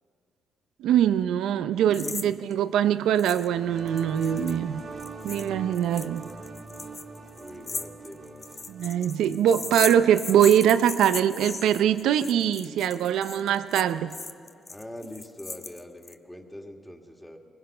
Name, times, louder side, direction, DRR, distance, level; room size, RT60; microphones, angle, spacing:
voice 1, 0.8-4.8 5.2-6.2 8.7-14.2, right 10 dB, 85° right, 12 dB, 0.6 m, -23 dB
voice 2, 1.7-2.3 7.4-8.5 14.7-17.4, left 1 dB, 5° left, 2 dB, 2.1 m, -43 dB
sound 1, 1.9-2.3 2.5-2.6 3.2-3.5 3.8-16.1, left 3 dB, 30° left, 0.9 m, -37 dB
sound 2, 3.4-10.7, right 3 dB, 50° right, 2.3 m, -43 dB
23.5 x 21.0 x 5.6 m, 2.4 s
cardioid pair, 90°, 0 cm